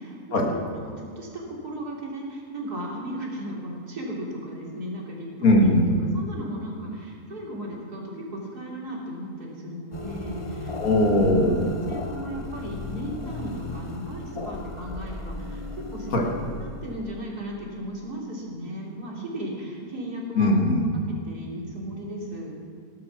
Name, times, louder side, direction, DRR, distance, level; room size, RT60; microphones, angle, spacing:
voice 1, 0.0-5.3 5.6-5.7 6.1-10.8 11.9-15.6 15.9-16.1 16.6-20.5 20.9-22.6, right 1 dB, 85° right, -3 dB, 3.8 m, -36 dB
voice 2, 5.4-5.9 10.8-11.7 16.1-16.2 20.3-20.9, left 1 dB, 65° left, 0 dB, 2.5 m, -20 dB
sound 1, 9.9-17.8, left 2 dB, 25° left, 1.0 m, -36 dB
17.5 x 12.0 x 6.1 m, 2.2 s
omnidirectional pair, 1.6 m